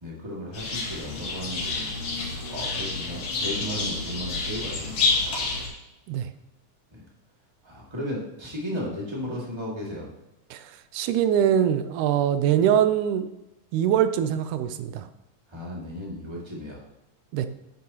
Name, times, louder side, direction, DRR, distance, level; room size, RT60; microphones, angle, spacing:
voice 1, 0.0-5.5 7.6-10.1 15.5-16.8, equal, 10° right, -4 dB, 1.6 m, -35 dB
sound 1, 0.5-5.7, left 3 dB, 60° left, 3.2 m, -29 dB
voice 2, 10.5-13.3 13.7-15.1 17.3-17.5, right 9 dB, 85° right, 11 dB, 2.1 m, -23 dB
10.0 x 8.5 x 2.9 m, 0.91 s
omnidirectional pair, 3.5 m